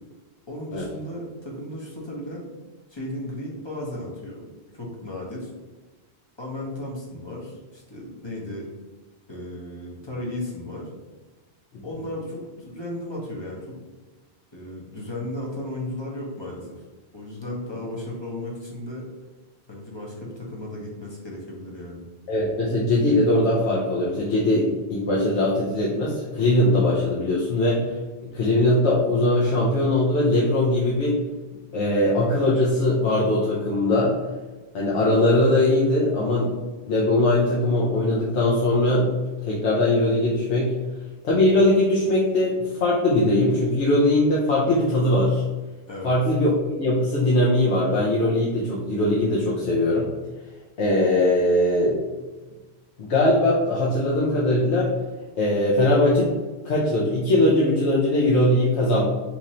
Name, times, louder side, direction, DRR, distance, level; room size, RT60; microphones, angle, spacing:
voice 1, 0.5-2.5 2.9-4.5 4.7-5.5 6.4-8.7 9.3-10.9 11.8-13.7 14.5-16.8 17.1-19.1 19.7-22.0 45.9-46.1, left 1 dB, 30° left, -3 dB, 0.7 m, -35 dB
voice 2, 22.3-27.8 28.3-31.2 31.7-34.1 34.7-36.5 36.8-39.1 39.4-40.7 41.2-45.4 46.0-46.5 46.8-50.1 50.8-52.0 53.0-54.9 55.4-56.3 56.6-59.1, left 1 dB, 90° left, -5 dB, 1.0 m, -20 dB
3.0 x 2.5 x 4.1 m, 1.2 s
omnidirectional pair, 1.1 m